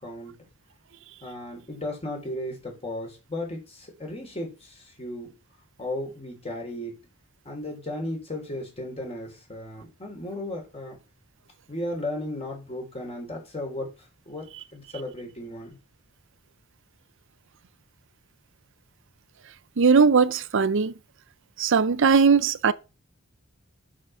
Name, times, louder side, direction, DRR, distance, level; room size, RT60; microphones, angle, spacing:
voice 1, 0.0-0.3 1.2-5.3 5.8-6.9 7.4-11.0 11.7-13.9 14.3-14.4 14.7-15.8, left 1 dB, 30° left, 3.3 m, -35 dB
voice 2, 19.8-20.9 21.6-22.7, right 5 dB, 60° right, 0.6 m, -19 dB
6.4 x 6.3 x 5.5 m
head